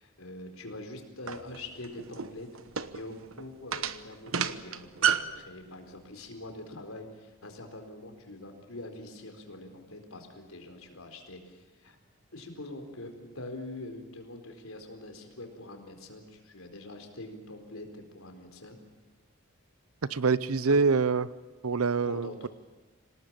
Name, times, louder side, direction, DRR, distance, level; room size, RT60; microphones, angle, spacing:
voice 1, 0.0-2.5 2.9-12.0 12.3-18.8 20.7-20.8 22.0-22.3, left 2 dB, 80° left, 5 dB, 4.3 m, -44 dB
sound 1, 1.3-5.4, right 8 dB, 75° right, 1.1 m, -31 dB
voice 2, 20.1-21.3 21.6-22.5, right 4 dB, 90° right, 17 dB, 0.8 m, -25 dB
26.5 x 19.0 x 8.8 m, 1.2 s
head